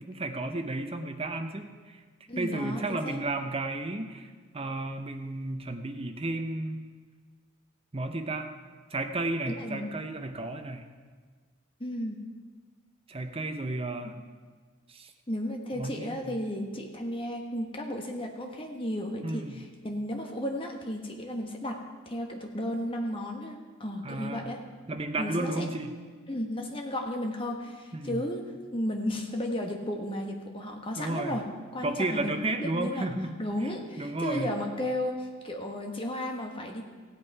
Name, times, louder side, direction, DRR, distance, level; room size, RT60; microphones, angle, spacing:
voice 1, 0.0-2.0 2.4-4.3 4.5-6.8 7.9-8.5 8.9-10.9 13.1-14.2 14.9-15.1 15.7-16.4 19.2-19.6 24.0-24.5 24.9-25.9 27.9-28.2 31.0-31.4 31.8-33.7 34.0-34.5, right 2 dB, 30° right, 6 dB, 0.8 m, -33 dB
voice 2, 2.3-3.2 9.5-9.9 11.8-12.2 14.0-14.1 15.3-21.8 22.0-24.6 25.2-25.7 26.3-28.4 28.7-31.4 31.7-33.1 33.4-36.8, left 1 dB, 25° left, 2 dB, 1.3 m, -34 dB
16.0 x 8.4 x 4.7 m, 1.5 s
head